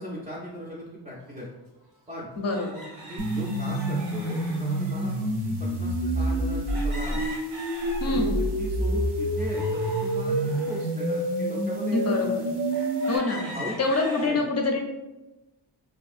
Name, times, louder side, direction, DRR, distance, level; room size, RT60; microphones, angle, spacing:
voice 1, 0.0-1.5 2.1-2.3 3.0-7.3 8.0-12.3 13.3-13.8 14.2-14.4, equal, 15° right, -6 dB, 0.4 m, -38 dB
sound 1, 1.4-1.5 2.5-5.3 6.7-8.4 8.9-10.8 11.4-11.5 12.2-12.3 12.7-14.3, right 1 dB, 85° right, 1.2 m, -41 dB
voice 2, 2.4-2.8 8.0-8.4 11.9-12.5 13.1-13.4 13.8-14.8, left 3 dB, 35° left, 1 dB, 0.5 m, -26 dB
sound 2, 3.2-13.2, right 1 dB, 65° right, 0.6 m, -27 dB
2.7 x 2.5 x 2.4 m, 1.0 s
wide cardioid pair, 90°, 44 cm